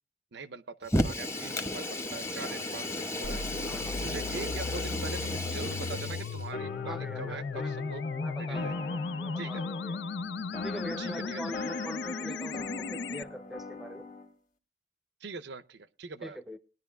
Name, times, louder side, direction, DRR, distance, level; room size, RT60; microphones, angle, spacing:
voice 1, 0.3-3.4 4.0-8.1 8.4-8.8 9.4-9.7 11.0-11.4 15.2-16.4, right 4 dB, 60° right, 0.6 m, -42 dB
Fire, 0.8-6.5, left 1 dB, 15° left, 1.0 m, -33 dB
sound 1, 3.2-13.2, left 4 dB, 60° left, 0.5 m, -36 dB
voice 2, 3.6-4.2 6.8-7.8 8.1-10.0 10.6-14.1 16.2-16.6, equal, ahead, 0.7 m, -43 dB
sound 2, 6.5-14.3, left 3 dB, 40° left, 1.2 m, -42 dB
19.5 x 11.0 x 2.3 m
head